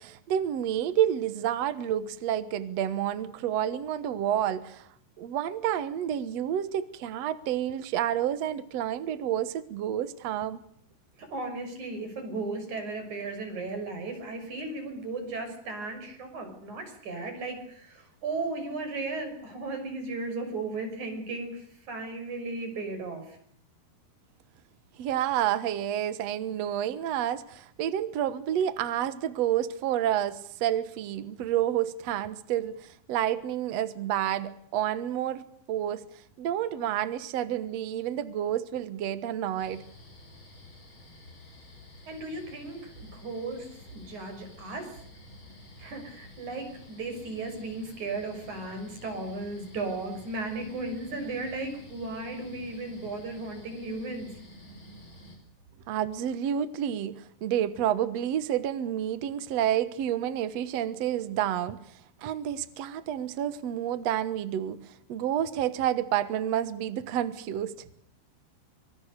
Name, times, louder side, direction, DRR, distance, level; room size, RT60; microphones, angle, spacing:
voice 1, 0.0-4.9 5.2-10.6 25.0-36.0 36.4-39.8 55.9-61.8 62.2-67.7, right 10 dB, 75° right, 1.5 m, -29 dB
voice 2, 11.2-23.4 42.1-45.0 45.8-54.3, right 3 dB, 45° right, 7.3 m, -36 dB
sound 1, 39.6-55.4, left 1 dB, 25° left, 6.6 m, -50 dB
25.5 x 24.5 x 6.7 m
omnidirectional pair, 5.0 m